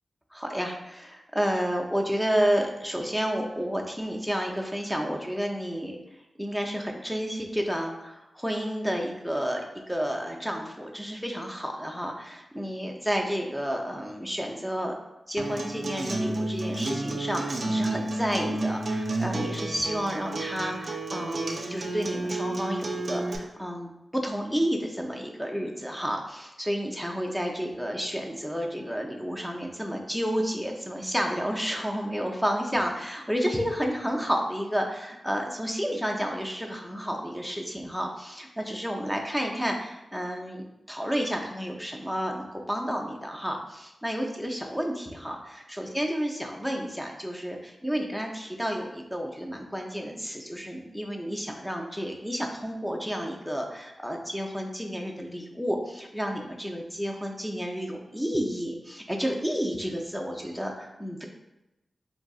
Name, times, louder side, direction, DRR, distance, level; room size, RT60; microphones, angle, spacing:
voice 1, 0.3-6.0 6.4-14.9 15.3-61.3, equal, ahead, 1 dB, 0.4 m, -31 dB
Acoustic guitar, 15.4-23.4, right 2 dB, 55° right, 0.4 m, -31 dB
3.7 x 2.6 x 2.3 m, 0.93 s
wide cardioid pair, 70°, 0 cm